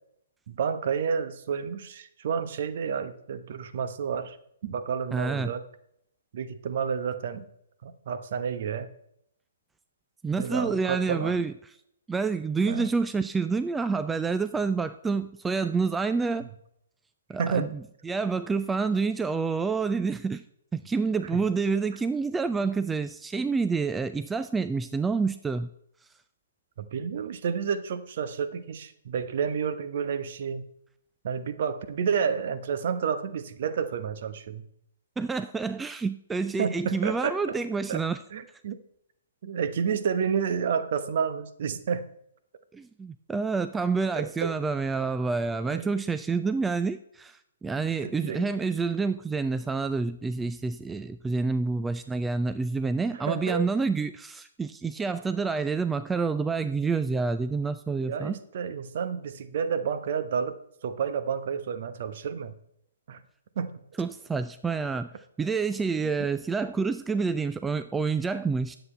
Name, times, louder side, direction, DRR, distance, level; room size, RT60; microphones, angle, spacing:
voice 1, 0.5-4.4 4.6-5.6 6.3-7.5 7.8-8.9 10.4-11.4 12.7-12.9 17.4-17.7 21.3-21.4 26.8-30.6 31.2-34.7 36.6-37.3 37.9-38.0 38.3-38.8 39.4-42.0 44.1-44.5 45.6-45.9 48.0-48.5 53.1-53.6 58.0-62.5 63.1-63.2 63.6-63.7 66.0-66.3, right 6 dB, 50° right, 11 dB, 0.9 m, -30 dB
voice 2, 5.1-5.5 10.2-11.5 12.1-16.5 17.3-20.4 20.7-25.7 35.2-38.2 42.7-58.3 64.0-65.1 65.4-68.8, right 4 dB, 10° right, 11 dB, 0.3 m, -28 dB
9.6 x 7.8 x 4.4 m, 0.72 s
figure-of-eight pair, 120°, 0 cm